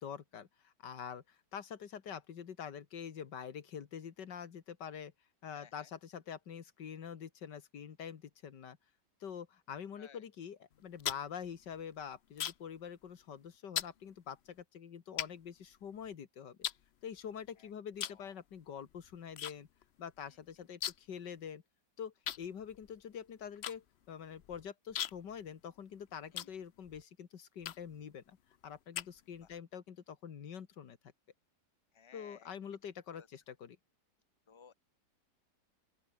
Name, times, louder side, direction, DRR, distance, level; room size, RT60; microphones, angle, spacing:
voice 1, 0.0-5.1 5.4-8.8 9.2-16.6 17.0-19.7 20.0-21.6 22.0-28.4 28.6-31.0 32.1-33.8, left 8 dB, 85° left, 2.2 m, -46 dB
voice 2, 5.5-5.9 10.0-10.2 17.6-17.7 18.0-18.3 26.3-26.5 29.4-29.5 31.9-32.5 33.1-33.3 34.5-34.7, left 6 dB, 20° left, 1.2 m, -59 dB
sound 1, 10.7-12.8 13.1-13.4 13.7-14.0 14.6-14.7 15.2-16.1 16.6-17.5 17.9-18.3 18.5-19.5 19.8-19.9 20.2-21.2 21.5-21.6 22.2-27.0 27.6-28.0 28.5-29.6, left 10 dB, 60° left, 0.6 m, -41 dB
open air
omnidirectional pair, 1.8 m